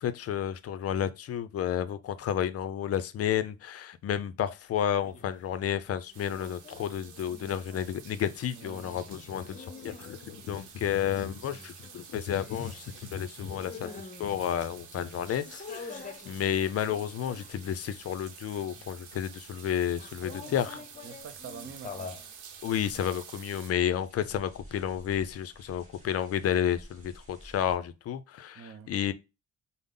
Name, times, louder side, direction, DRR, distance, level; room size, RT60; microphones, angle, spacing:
voice 1, 0.0-20.8 22.6-29.1, left 9 dB, 55° left, 0.4 m, -31 dB
sound 1, 5.0-5.5 5.8-17.8 18.1-19.1 20.0-22.3, left 4 dB, 25° left, 0.7 m, -47 dB
sound 2, 6.1-23.7, right 7 dB, 75° right, 0.8 m, -50 dB
voice 2, 8.5-8.8 20.2-22.1 28.5-28.9, right 6 dB, 45° right, 0.5 m, -47 dB
sound 3, 9.8-27.8, right 1 dB, 25° right, 1.9 m, -57 dB
5.2 x 2.0 x 3.7 m
cardioid pair, 90°, 30 cm